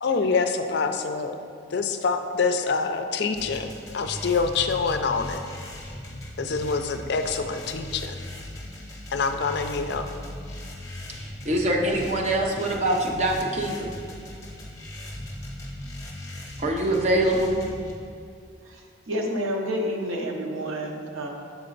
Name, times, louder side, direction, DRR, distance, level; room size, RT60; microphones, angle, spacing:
voice 1, 0.0-1.3 1.7-3.7 3.9-5.4 6.4-8.0 9.1-10.0, left 4 dB, 55° left, 7 dB, 0.4 m, -25 dB
sound 1, 3.3-17.9, left 1 dB, 15° left, 0.7 m, -38 dB
voice 2, 11.2-13.9 16.6-17.6, right 1 dB, 35° right, 0 dB, 0.6 m, -24 dB
voice 3, 18.6-21.3, equal, 90° right, 1 dB, 0.8 m, -29 dB
7.3 x 4.3 x 3.9 m, 2.3 s
head